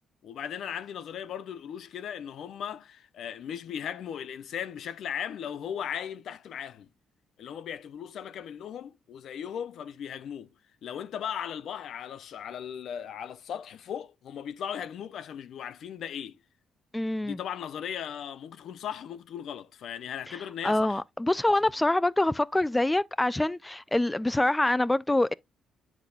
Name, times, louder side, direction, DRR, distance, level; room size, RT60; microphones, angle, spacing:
voice 1, 0.2-6.9 7.4-10.5 10.8-16.4 17.2-21.0, left 9 dB, 70° left, 0.6 m, -37 dB
voice 2, 16.9-17.4 20.3-20.4 20.6-25.3, left 1 dB, 10° left, 0.3 m, -25 dB
8.4 x 6.0 x 2.4 m
cardioid pair, 90°, 0 cm